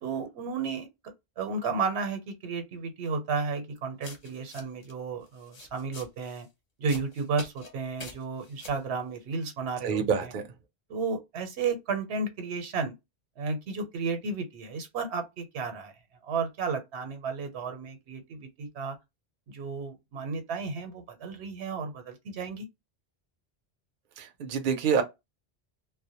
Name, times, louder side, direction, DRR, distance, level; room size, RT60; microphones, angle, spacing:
voice 1, 0.0-0.9 1.4-6.5 6.8-10.3 10.9-12.9 13.4-15.9 16.2-19.0 19.5-22.7, right 4 dB, 90° right, 0.9 m, -33 dB
sound 1, 4.0-4.9 5.3-6.5 6.9-7.7 8.0-8.8, left 3 dB, 45° left, 0.7 m, -46 dB
voice 2, 9.8-10.4 24.2-25.0, right 6 dB, 60° right, 0.6 m, -27 dB
2.1 x 2.1 x 2.7 m
omnidirectional pair, 1.1 m